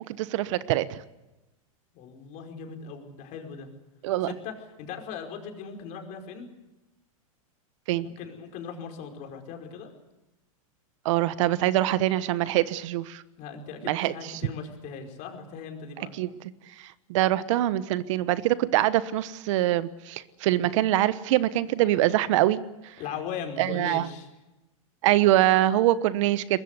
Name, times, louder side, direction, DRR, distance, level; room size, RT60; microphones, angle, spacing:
voice 1, 0.2-1.0 4.0-4.3 7.9-8.0 11.0-13.2 13.9-14.1 16.2-16.3 17.1-22.6 23.6-24.1 25.0-26.6, right 14 dB, 60° right, 15 dB, 1.1 m, -24 dB
voice 2, 1.9-3.7 4.4-4.5 4.8-6.5 8.0-9.9 13.4-16.1 23.0-24.3, left 6 dB, 45° left, 4 dB, 4.9 m, -39 dB
22.5 x 21.0 x 8.2 m, 1.0 s
hypercardioid pair, 125°, 18 cm